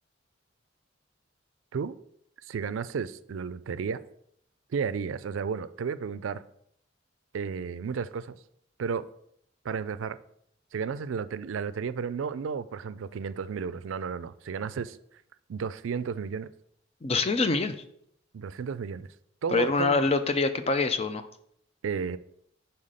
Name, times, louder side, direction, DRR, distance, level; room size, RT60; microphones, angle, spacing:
voice 1, 2.4-4.0 4.7-6.4 7.3-8.4 8.8-9.1 9.6-10.2 10.7-15.0 15.5-16.5 18.3-19.1 19.4-20.0 21.8-22.2, right 6 dB, 90° right, 15 dB, 0.4 m, -33 dB
voice 2, 17.0-17.8 19.5-21.3, left 3 dB, 30° left, 10 dB, 0.5 m, -25 dB
5.7 x 4.4 x 5.0 m, 0.70 s
head